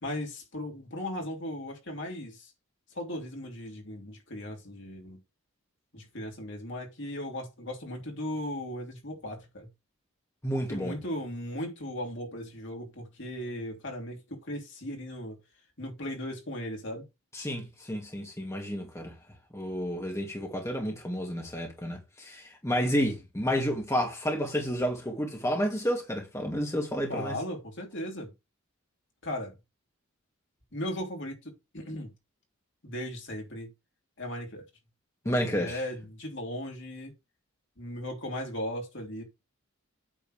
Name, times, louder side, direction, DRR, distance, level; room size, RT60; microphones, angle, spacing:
voice 1, 0.0-2.5 2.9-5.2 5.9-9.7 10.7-15.4 15.8-17.0 27.1-28.3 29.2-29.5 30.7-32.1 32.8-33.7 34.2-34.6 35.2-37.1 37.8-39.2, left 1 dB, 55° left, 3.2 m, -37 dB
voice 2, 10.4-11.0 17.3-19.1 19.5-27.4 35.3-35.8, equal, 15° left, 1.9 m, -30 dB
8.9 x 3.8 x 6.4 m
head